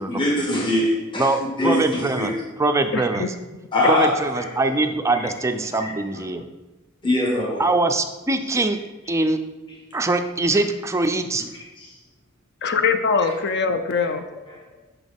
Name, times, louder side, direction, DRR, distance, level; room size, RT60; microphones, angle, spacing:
voice 1, 0.0-2.3 3.7-4.8 5.1-5.3 5.8-6.2 7.0-7.6 9.7-9.8 10.5-10.6 14.0-14.1 14.5-14.6, left 1 dB, 20° left, -4 dB, 1.2 m, -23 dB
voice 2, 1.2-2.3 2.6-3.3 3.9-6.4 7.6-8.8 9.1-9.4 9.9-11.5, right 2 dB, 15° right, 7 dB, 0.4 m, -22 dB
voice 3, 2.9-3.3 12.6-14.2, left 5 dB, 50° left, 8 dB, 0.5 m, -22 dB
6.3 x 5.6 x 3.5 m, 1.1 s
head